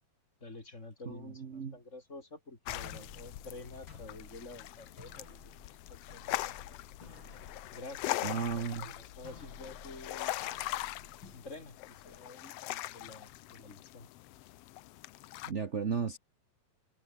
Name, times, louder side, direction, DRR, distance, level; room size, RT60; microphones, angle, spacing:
voice 1, 0.4-6.8 7.7-10.4 11.3-14.1, left 2 dB, 25° left, 3.9 m, -49 dB
voice 2, 1.1-1.8 8.2-8.9 15.4-16.2, right 6 dB, 65° right, 0.6 m, -35 dB
sound 1, 2.7-15.5, left 16 dB, 75° left, 1.6 m, -41 dB
sound 2, 2.7-12.2, left 4 dB, 40° left, 4.4 m, -54 dB
omnidirectional pair, 3.3 m